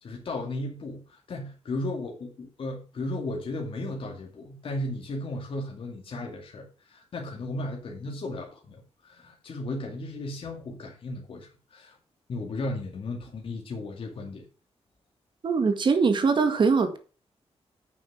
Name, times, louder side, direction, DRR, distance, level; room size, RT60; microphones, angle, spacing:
voice 1, 0.0-12.0 12.3-14.5, left 2 dB, 55° left, 2.2 m, -35 dB
voice 2, 15.4-17.0, right 5 dB, 45° right, 1.8 m, -22 dB
9.1 x 6.5 x 6.0 m
wide cardioid pair, 175°, 11 cm